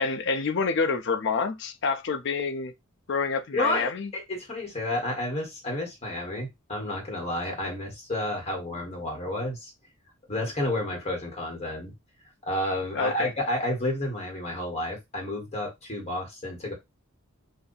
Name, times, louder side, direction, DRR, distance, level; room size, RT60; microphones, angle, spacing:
voice 1, 0.0-2.7 3.1-4.1 12.9-13.3, left 4 dB, 55° left, 0.5 m, -27 dB
voice 2, 3.5-9.7 10.3-11.9 12.4-16.7, left 1 dB, 30° left, 1.4 m, -30 dB
2.6 x 2.6 x 3.9 m
head